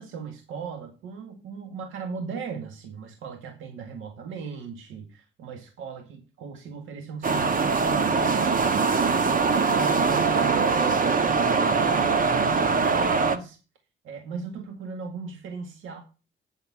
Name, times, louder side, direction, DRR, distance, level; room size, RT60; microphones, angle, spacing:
voice 1, 0.0-10.7 11.2-13.6 14.0-16.0, right 5 dB, 85° right, 5 dB, 2.0 m, -38 dB
sound 1, 7.2-13.4, right 4 dB, 45° right, 1.5 m, -22 dB
8.9 x 6.5 x 7.4 m, 0.33 s
cardioid pair, 90°, 20 cm